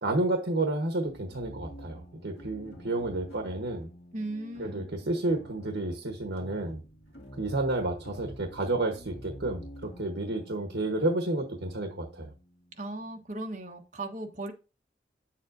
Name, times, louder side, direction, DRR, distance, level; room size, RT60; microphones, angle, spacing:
voice 1, 0.0-3.9 4.6-6.8 7.3-12.3, right 2 dB, 70° right, 1.1 m, -31 dB
sound 1, 1.0-13.9, equal, 65° left, 2.4 m, -49 dB
voice 2, 4.1-4.9 12.8-14.5, right 2 dB, 40° right, 1.2 m, -37 dB
8.6 x 7.3 x 2.6 m
head